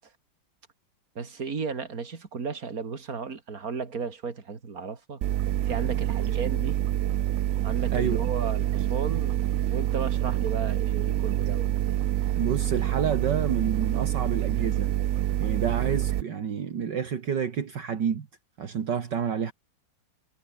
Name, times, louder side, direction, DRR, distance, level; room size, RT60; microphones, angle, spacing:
voice 1, 1.1-5.2 5.6-6.8 7.6-9.4 9.7-11.7, right 5 dB, 45° right, 3.0 m, -34 dB
sound 1, 5.2-16.2, right 13 dB, 85° right, 0.7 m, -26 dB
voice 2, 7.9-8.3 12.4-14.9 15.4-18.3 18.6-19.5, right 7 dB, 65° right, 2.3 m, -29 dB
omnidirectional pair, 2.1 m